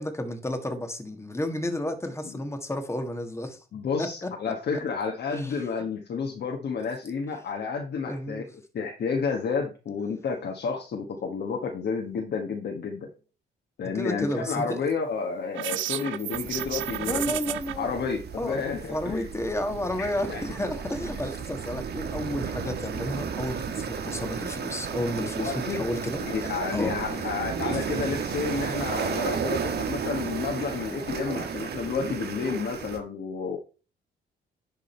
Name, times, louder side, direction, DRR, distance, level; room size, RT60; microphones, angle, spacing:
voice 1, 0.0-3.6 4.0-4.5 5.3-5.6 8.0-8.5 13.9-14.8 17.0-18.0 18.4-18.6 18.9-26.2 26.7-26.9, left 1 dB, 15° left, 6 dB, 1.7 m, -31 dB
voice 2, 3.7-8.4 8.7-13.1 13.8-17.4 17.8-19.3 20.0-20.4 21.1-21.2 25.4-25.9 26.2-33.6, left 5 dB, 60° left, 1 dB, 1.3 m, -31 dB
sound 1, 15.5-17.7, right 14 dB, 80° right, 0.5 m, -32 dB
sound 2, 16.3-33.0, right 6 dB, 55° right, 1.3 m, -33 dB
10.5 x 3.7 x 4.4 m, 0.34 s
cardioid pair, 90°, 20 cm